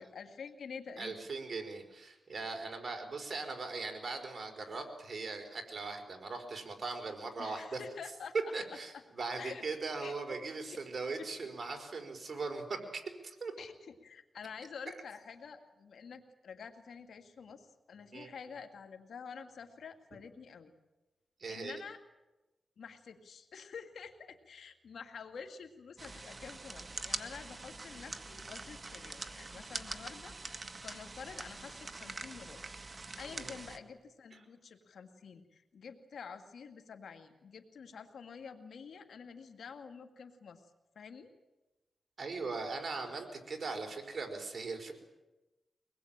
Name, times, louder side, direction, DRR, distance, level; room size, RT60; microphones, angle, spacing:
voice 1, 0.0-1.2 7.4-8.5 8.9-9.0 9.4-9.6 10.0-10.1 10.7-10.8 11.2-11.3 13.6-20.7 21.5-22.0 22.8-40.6 41.0-41.3, left 6 dB, 80° left, 6 dB, 2.4 m, -48 dB
voice 2, 1.0-7.8 8.5-13.5 18.1-18.3 21.4-21.8 33.4-33.6 34.3-34.4 42.2-44.9, right 3 dB, 50° right, 4 dB, 4.8 m, -40 dB
sound 1, 26.0-33.8, right 3 dB, 35° right, 1.9 m, -44 dB
24.0 x 20.5 x 8.9 m, 1.1 s
cardioid pair, 65°, 0 cm